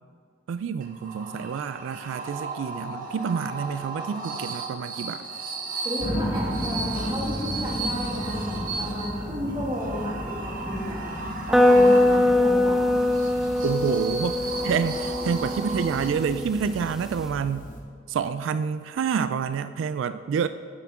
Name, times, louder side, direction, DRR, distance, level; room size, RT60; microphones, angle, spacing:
voice 1, 0.5-5.2 13.6-17.7 18.1-20.5, right 6 dB, 85° right, 12 dB, 0.3 m, -28 dB
sound 1, 0.8-16.5, right 3 dB, 45° right, 1.0 m, -36 dB
voice 2, 5.8-11.0 11.5-12.9, equal, 20° right, -4 dB, 2.0 m, -33 dB
sound 2, 6.0-17.8, equal, 45° left, 1.3 m, -34 dB
sound 3, 11.5-17.3, left 1 dB, ahead, 0.4 m, -22 dB
10.5 x 8.0 x 3.6 m, 2.3 s
head